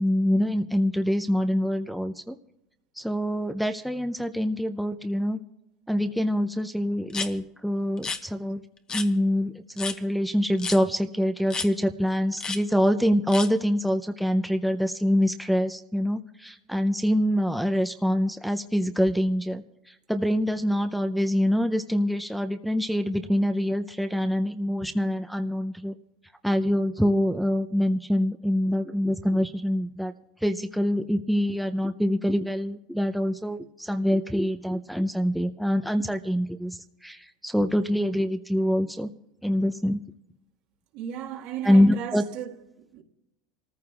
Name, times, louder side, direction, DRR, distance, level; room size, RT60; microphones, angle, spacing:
voice 1, 0.0-2.4 3.0-5.4 5.9-8.6 8.9-19.6 20.1-25.9 26.4-30.1 30.4-39.1 39.4-40.0 41.6-42.2, equal, ahead, 0.6 m, -25 dB
sound 1, 7.1-7.3 8.0-8.2 8.9-9.1 9.8-10.0 10.6-10.8 11.5-11.7 12.4-12.6 13.3-13.5, left 5 dB, 25° left, 1.1 m, -31 dB
voice 2, 40.9-43.0, right 10 dB, 65° right, 1.8 m, -36 dB
27.5 x 14.5 x 2.4 m
supercardioid pair, 100°, 3 cm